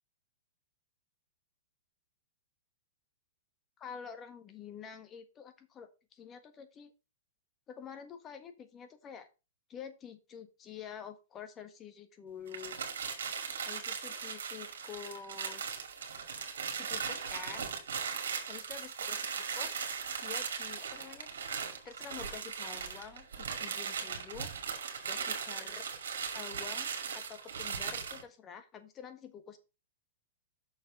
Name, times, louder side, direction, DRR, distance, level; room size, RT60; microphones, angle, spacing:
voice 1, 3.8-6.9 7.7-9.3 9.7-12.8 13.6-15.7 16.8-17.7 18.5-19.7 20.2-21.3 21.8-24.5 25.0-25.8 26.3-29.6, left 7 dB, 25° left, 8 dB, 1.5 m, -48 dB
sound 1, 12.5-28.2, right 6 dB, 80° right, 2.2 m, -38 dB
6.5 x 5.7 x 4.9 m, 0.29 s
hypercardioid pair, 125°, 0 cm